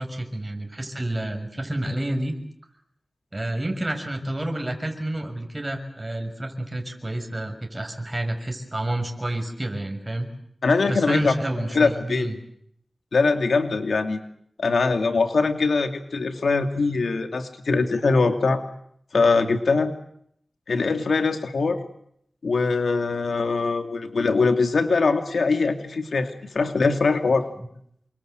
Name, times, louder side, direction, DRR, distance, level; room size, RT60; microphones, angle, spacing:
voice 1, 0.0-2.3 3.3-10.3 10.9-12.3 21.6-21.7 27.6-27.7, right 1 dB, 20° right, 5 dB, 6.2 m, -29 dB
voice 2, 10.6-11.3 11.7-12.3 13.1-14.2 14.6-18.6 19.1-19.9 20.7-21.8 22.4-27.4, left 4 dB, 85° left, 7 dB, 2.5 m, -22 dB
28.5 x 24.0 x 7.9 m, 0.71 s
wide cardioid pair, 85°, 0 cm